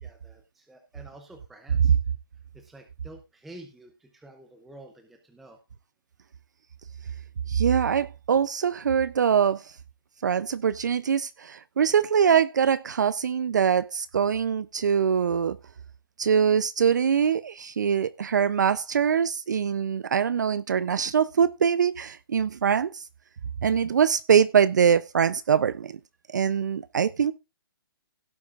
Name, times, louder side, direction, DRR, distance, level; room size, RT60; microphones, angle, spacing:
voice 1, 0.0-1.9 2.5-5.6 15.0-15.1 19.8-20.0, right 1 dB, ahead, 0.5 m, -49 dB
voice 2, 7.5-9.8 10.2-15.6 16.2-23.1 23.6-26.0 26.3-27.3, right 7 dB, 50° right, 0.5 m, -23 dB
17.0 x 8.4 x 2.4 m
hypercardioid pair, 180°, 13 cm